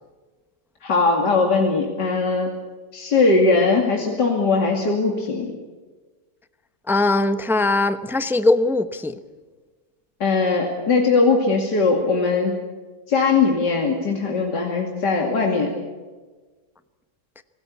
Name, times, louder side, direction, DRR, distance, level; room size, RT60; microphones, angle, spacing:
voice 1, 0.8-2.5 2.9-5.5 10.2-12.5 13.1-15.7, left 4 dB, 85° left, 1 dB, 3.2 m, -20 dB
voice 2, 6.9-9.2, left 2 dB, ahead, 10 dB, 0.7 m, -20 dB
26.5 x 18.5 x 8.5 m, 1.3 s
omnidirectional pair, 1.8 m